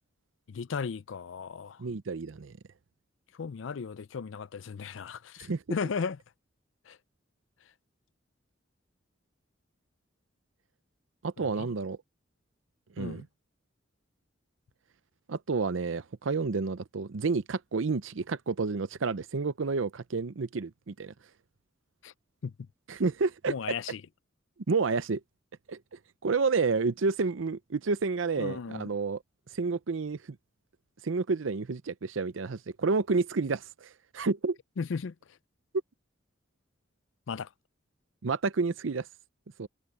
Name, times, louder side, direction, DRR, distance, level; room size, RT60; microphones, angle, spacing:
voice 1, 0.5-1.8 3.4-6.2 6.9-7.0 11.5-11.7 13.0-13.2 22.0-22.1 22.4-22.5 23.5-24.0 28.4-28.9 34.8-35.1 37.3-37.5, left 5 dB, 75° left, 0.4 m, -35 dB
voice 2, 1.8-2.5 5.4-5.6 11.2-12.0 13.0-13.3 15.3-21.1 22.9-23.5 24.7-25.2 25.7-25.8 26.2-29.2 29.5-30.2 31.0-34.6 38.2-39.1 39.6-39.7, right 4 dB, 85° right, 0.6 m, -30 dB
head